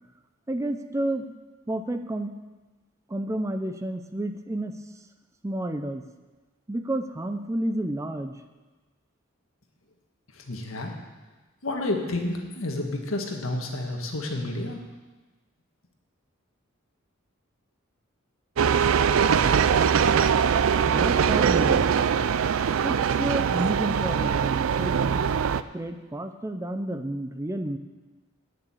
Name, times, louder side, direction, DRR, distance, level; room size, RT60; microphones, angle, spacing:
voice 1, 0.5-1.3 1.7-2.3 3.1-4.8 5.4-6.0 6.7-8.4 20.9-21.9 22.8-25.3 25.7-27.8, right 1 dB, 15° right, 8 dB, 0.4 m, -30 dB
voice 2, 10.3-10.9 11.6-14.8, left 2 dB, 80° left, 2 dB, 1.6 m, -30 dB
sound 1, 18.6-25.6, right 7 dB, 80° right, 0.4 m, -22 dB
9.5 x 6.9 x 8.4 m, 1.2 s
head